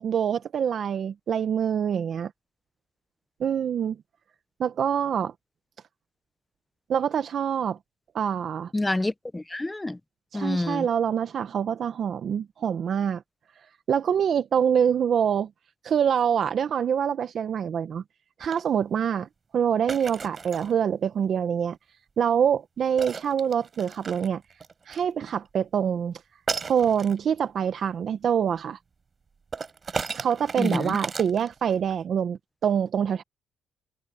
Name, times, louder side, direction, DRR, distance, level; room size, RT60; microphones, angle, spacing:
voice 1, 0.0-2.3 3.4-4.0 4.6-5.3 6.9-7.8 8.1-8.7 10.3-13.2 13.9-15.5 15.8-18.0 18.4-19.3 19.5-21.8 22.2-24.4 24.9-26.1 26.7-28.8 30.1-33.2, right 8 dB, 60° right, 1.0 m, -25 dB
voice 2, 8.7-10.0 10.3-10.9 30.6-31.0, left 2 dB, 15° left, 0.8 m, -28 dB
sound 1, 18.4-18.6 19.9-20.7 23.0-25.0 26.5-27.2 29.5-31.9, right 5 dB, 40° right, 6.0 m, -35 dB
cardioid pair, 90°, 0 cm